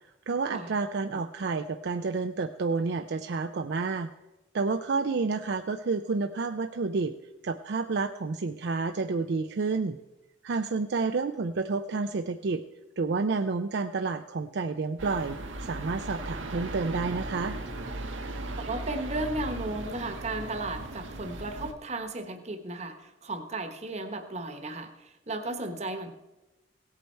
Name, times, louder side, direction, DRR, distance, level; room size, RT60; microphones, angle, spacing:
voice 1, 0.3-4.1 4.5-7.2 7.4-10.0 10.4-12.6 13.0-17.6, right 4 dB, 60° right, 7 dB, 0.4 m, -30 dB
sound 1, 15.0-21.7, right 2 dB, 90° right, 1.2 m, -37 dB
voice 2, 18.6-26.1, right 2 dB, 35° right, 7 dB, 1.1 m, -35 dB
16.5 x 8.5 x 4.5 m, 1.0 s
head